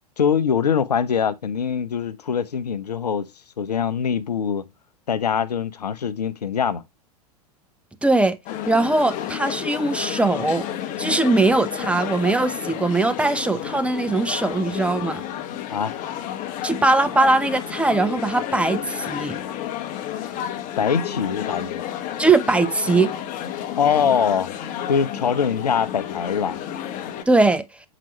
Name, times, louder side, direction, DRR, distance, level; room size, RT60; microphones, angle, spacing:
voice 1, 0.2-3.3 3.6-4.6 5.1-6.8 15.7-15.9 20.8-21.8 23.8-24.5 24.9-26.6, left 7 dB, 80° left, 0.6 m, -23 dB
voice 2, 8.0-8.4 8.7-10.6 11.0-15.2 16.6-19.4 22.2-23.1 27.3-27.6, right 2 dB, 5° right, 0.7 m, -20 dB
sound 1, 8.5-27.2, left 10 dB, 40° left, 1.1 m, -31 dB
7.4 x 4.9 x 3.0 m
figure-of-eight pair, 95°, 20 cm